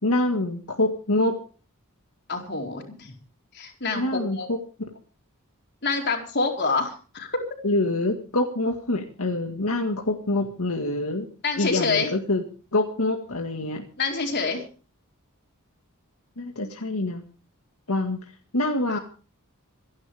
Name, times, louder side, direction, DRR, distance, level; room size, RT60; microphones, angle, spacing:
voice 1, 0.0-1.4 4.0-4.6 7.6-11.3 11.6-12.4 12.7-13.9 16.4-17.2 17.9-18.2 18.5-19.0, left 2 dB, 75° left, 2 dB, 1.9 m, -25 dB
voice 2, 2.3-3.1 3.5-4.5 5.8-7.3 11.4-12.1 14.0-14.6 18.9-19.0, left 4 dB, 50° left, 1 dB, 4.5 m, -27 dB
27.0 x 11.0 x 3.5 m, 0.38 s
head